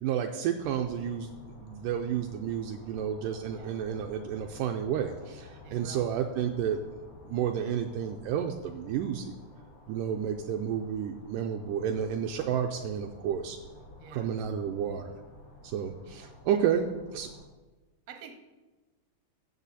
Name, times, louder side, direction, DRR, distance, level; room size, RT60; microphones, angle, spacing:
voice 1, 0.0-6.8 7.3-9.3 9.9-13.6 14.1-15.1 15.6-17.3, right 8 dB, 80° right, 4 dB, 2.2 m, -31 dB
sound 1, 0.6-17.4, left 2 dB, 60° left, 0.9 m, -51 dB
voice 2, 5.6-6.1 14.0-14.3 18.1-18.4, right 7 dB, 60° right, 5 dB, 2.1 m, -47 dB
14.0 x 8.4 x 4.2 m, 1.2 s
omnidirectional pair, 4.0 m